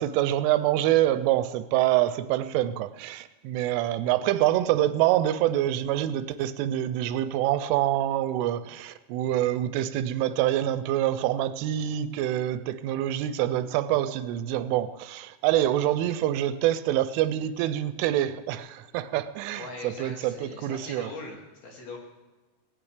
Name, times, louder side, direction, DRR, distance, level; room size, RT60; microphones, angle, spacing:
voice 1, 0.0-21.1, right 13 dB, 85° right, 3.1 m, -26 dB
voice 2, 19.6-22.0, left 3 dB, 55° left, 3.8 m, -41 dB
19.0 x 16.5 x 3.4 m
omnidirectional pair, 5.6 m